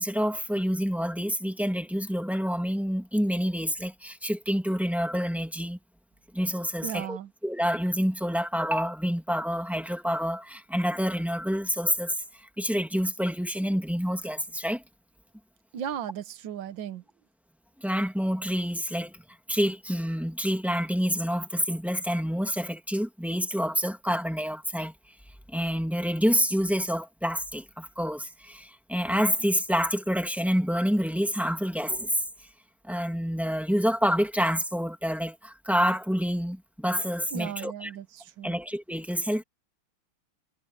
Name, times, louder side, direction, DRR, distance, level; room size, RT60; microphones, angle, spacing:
voice 1, 0.0-5.8 6.3-7.2 7.4-14.8 17.8-19.2 19.5-24.9 25.5-32.2 32.8-37.9 38.4-39.4, equal, ahead, 1.6 m, -28 dB
voice 2, 6.8-7.3 15.7-17.0 37.3-38.6, right 9 dB, 70° right, 1.8 m, -36 dB
omnidirectional pair, 2.1 m